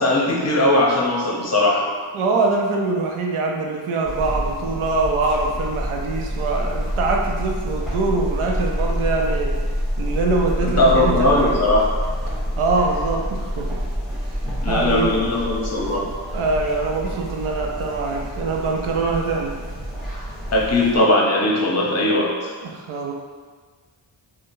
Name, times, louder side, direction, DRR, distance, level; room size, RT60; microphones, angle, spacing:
voice 1, 0.0-1.8 10.6-11.9 14.6-16.0 20.5-22.5, left 2 dB, 30° left, -2 dB, 0.7 m, -19 dB
voice 2, 2.1-9.5 10.0-11.5 12.3-13.7 14.7-15.2 16.3-19.5 22.6-23.1, right 3 dB, 80° right, 0 dB, 0.6 m, -23 dB
sound 1, 4.0-21.0, equal, ahead, 1.2 m, -27 dB
3.6 x 2.1 x 2.6 m, 1.5 s
cardioid pair, 55°, 49 cm